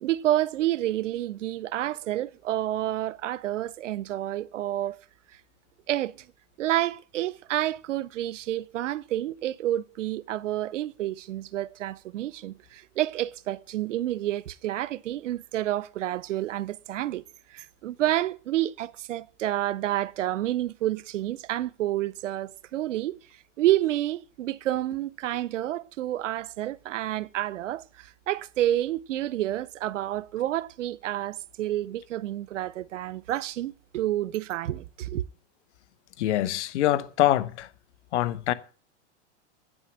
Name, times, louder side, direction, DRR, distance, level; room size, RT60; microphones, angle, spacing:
voice 1, 0.0-5.0 5.9-6.3 6.6-17.2 17.5-23.2 23.6-35.2, right 13 dB, 90° right, 0.7 m, -29 dB
voice 2, 36.2-37.7 38.1-38.5, left 13 dB, 70° left, 1.1 m, -24 dB
9.3 x 6.3 x 8.4 m
hypercardioid pair, 125°, 36 cm